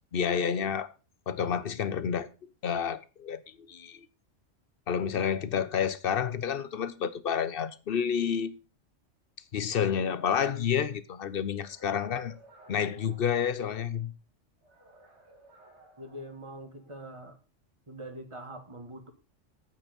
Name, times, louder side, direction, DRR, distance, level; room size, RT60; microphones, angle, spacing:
voice 1, 0.1-0.9 1.3-2.3 2.6-3.4 3.7-4.0 4.9-8.5 9.5-12.4 12.7-14.1, left 7 dB, 55° left, 0.8 m, -29 dB
sound 1, 11.6-14.0 14.6-17.0, right 2 dB, 60° right, 2.5 m, -58 dB
voice 2, 16.0-17.4 17.9-19.1, right 1 dB, 25° right, 1.8 m, -43 dB
8.9 x 8.8 x 5.2 m
omnidirectional pair, 1.3 m